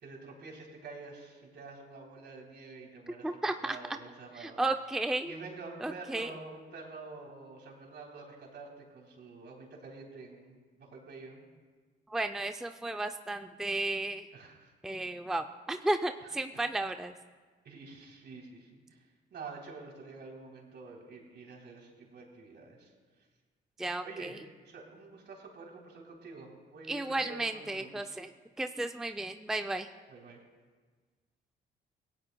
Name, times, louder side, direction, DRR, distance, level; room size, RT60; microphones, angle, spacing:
voice 1, 0.0-3.3 3.6-4.6 5.2-11.5 14.3-14.7 15.0-15.1 16.5-16.6 17.6-19.0 19.3-22.9 24.0-24.4 24.7-28.1 30.1-30.4, right 3 dB, 60° right, 0 dB, 3.5 m, -48 dB
voice 2, 3.1-4.0 4.3-5.3 5.8-6.3 12.1-14.3 14.8-17.1 23.8-24.4 26.9-28.3 28.6-29.9, right 2 dB, ahead, 7 dB, 0.5 m, -34 dB
25.0 x 17.5 x 2.3 m, 1.4 s
cardioid pair, 90°, 20 cm